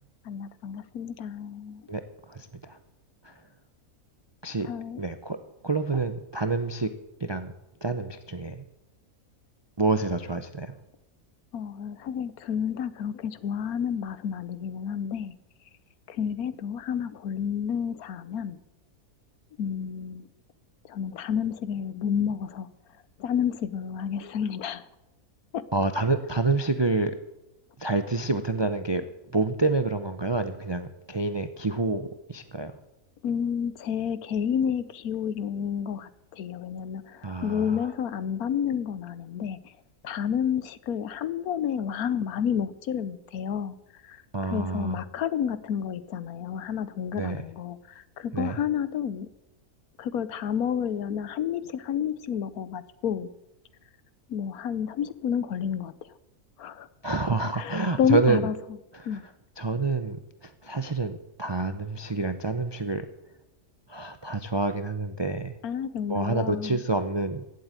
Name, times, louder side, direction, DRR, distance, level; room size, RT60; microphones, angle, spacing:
voice 1, 0.2-1.8 4.6-5.0 11.5-15.3 16.1-18.6 19.6-20.2 20.9-22.7 23.2-24.8 25.5-25.6 26.0-26.1 33.2-39.6 40.0-43.8 44.0-44.2 44.4-49.3 50.0-53.3 54.3-55.9 56.6-56.9 57.5-58.5 59.1-59.2 65.6-66.8, left 8 dB, 75° left, 15 dB, 1.3 m, -30 dB
voice 2, 2.3-2.8 3.2-3.3 4.4-4.7 5.0-5.4 5.6-6.9 7.2-7.5 7.8-8.6 9.8-10.7 25.7-27.2 27.8-29.0 29.3-32.7 37.2-37.8 44.3-45.0 47.1-47.4 48.3-48.6 57.0-58.5 58.9-59.2 59.6-60.2 60.4-63.1 63.9-65.5 66.1-67.4, right 3 dB, 40° right, 9 dB, 0.3 m, -28 dB
16.0 x 7.9 x 9.0 m, 0.93 s
omnidirectional pair, 1.6 m